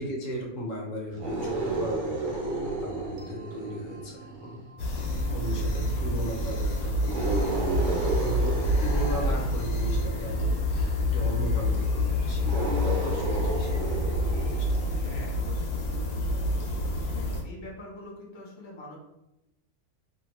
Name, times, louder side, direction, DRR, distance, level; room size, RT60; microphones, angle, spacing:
voice 1, 0.0-4.6 5.0-15.0, equal, 65° left, 0 dB, 0.9 m, -37 dB
sound 1, 1.1-4.7 7.0-10.1 12.4-15.1, right 2 dB, 60° right, 0.5 m, -32 dB
sound 2, 3.2-14.1, right 1 dB, 80° right, 1.0 m, -49 dB
sound 3, 4.8-17.4, left 1 dB, 85° left, 1.1 m, -27 dB
voice 2, 15.0-15.8 17.1-19.0, left 1 dB, 45° left, -3 dB, 0.3 m, -44 dB
2.8 x 2.1 x 2.9 m, 0.91 s
omnidirectional pair, 1.5 m